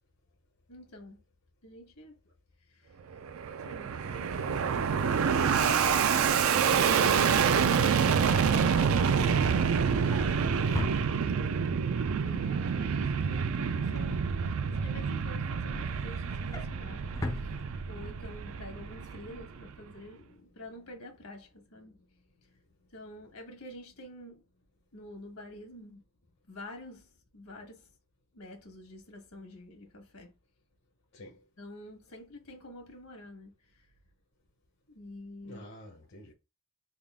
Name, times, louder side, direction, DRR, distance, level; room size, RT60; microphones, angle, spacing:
voice 1, 0.7-1.2 1.6-3.2 3.6-4.4 5.2-9.6 9.9-10.9 12.1-22.1 22.4-22.6 22.9-24.4 24.9-26.0 26.5-27.9 28.3-30.3 31.6-34.0 34.9-35.6, left 1 dB, 80° left, 1.4 m, -48 dB
Fixed-wing aircraft airplane, 3.1-19.7, right 6 dB, 65° right, 0.4 m, -27 dB
Drawer open or close, 9.5-11.7 12.1-12.4 12.6-14.9 15.3-18.3 18.6-18.8 19.1-19.2, left 2 dB, 15° left, 0.4 m, -43 dB
voice 2, 15.9-17.3 17.7-17.9 20.4-20.5 31.1-31.4 35.4-36.3, left 1 dB, 60° left, 0.7 m, -52 dB
3.6 x 2.4 x 3.5 m
head